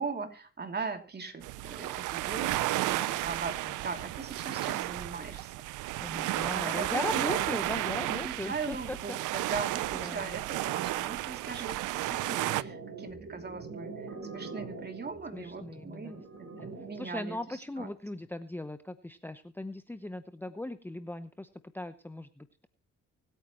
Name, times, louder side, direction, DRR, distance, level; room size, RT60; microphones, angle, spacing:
voice 1, 0.0-5.6 6.5-7.6 8.1-17.4 17.8-17.9, right 4 dB, 35° right, 5 dB, 2.9 m, -39 dB
sound 1, 1.4-12.6, right 16 dB, 85° right, 0.6 m, -33 dB
voice 2, 6.0-9.2 9.9-10.4 15.3-16.3 16.5-21.5 21.7-22.7, left 1 dB, 5° left, 10 dB, 0.9 m, -39 dB
sound 2, 12.1-17.1, right 4 dB, 60° right, 5.0 m, -44 dB
24.5 x 9.2 x 3.0 m, 0.33 s
cardioid pair, 90°, 30 cm